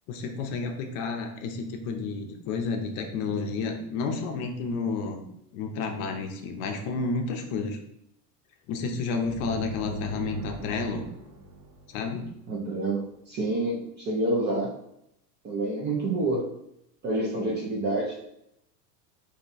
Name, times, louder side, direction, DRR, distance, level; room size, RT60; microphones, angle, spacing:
voice 1, 0.1-5.3 5.5-7.8 8.7-11.0 11.9-12.2, left 4 dB, 50° left, 4 dB, 0.6 m, -31 dB
sound 1, 9.2-12.8, right 1 dB, 40° right, 0.9 m, -40 dB
voice 2, 12.5-14.7 15.4-16.5 17.0-18.2, right 2 dB, 25° right, -2 dB, 0.4 m, -28 dB
2.7 x 2.2 x 3.9 m, 0.77 s
supercardioid pair, 120°, 49 cm